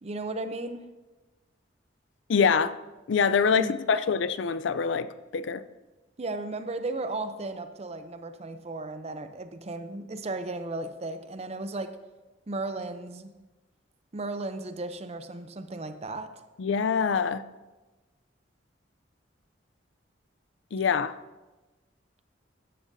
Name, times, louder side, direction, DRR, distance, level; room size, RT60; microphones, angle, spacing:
voice 1, 0.0-0.9 3.5-4.0 6.2-11.9 12.5-13.3 14.1-16.3, right 2 dB, 35° right, 9 dB, 0.6 m, -35 dB
voice 2, 2.3-2.7 3.1-5.6 16.6-17.4 20.7-21.2, left 6 dB, 75° left, 14 dB, 0.4 m, -25 dB
13.5 x 10.0 x 2.7 m, 1.1 s
head